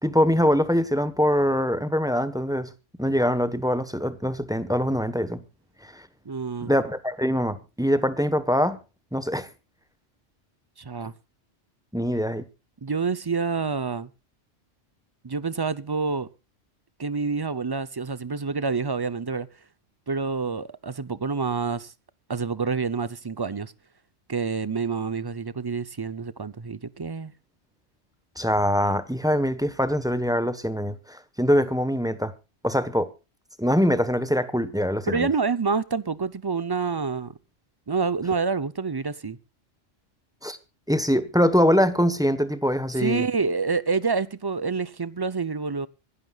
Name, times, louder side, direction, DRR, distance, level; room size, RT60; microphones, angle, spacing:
voice 1, 0.0-2.7 3.0-5.4 5.9-6.0 6.6-8.8 9.1-9.5 11.9-12.4 28.4-32.3 32.6-33.1 33.6-35.3 40.4-40.6 40.9-43.3, equal, 5° right, 1.0 m, -23 dB
voice 2, 6.2-6.7 10.8-11.1 12.8-14.1 15.2-16.3 17.0-19.5 20.1-21.9 22.3-23.7 24.3-27.3 35.1-37.3 37.9-39.4 43.0-45.9, right 4 dB, 25° right, 0.5 m, -27 dB
25.5 x 12.0 x 2.4 m
omnidirectional pair, 1.2 m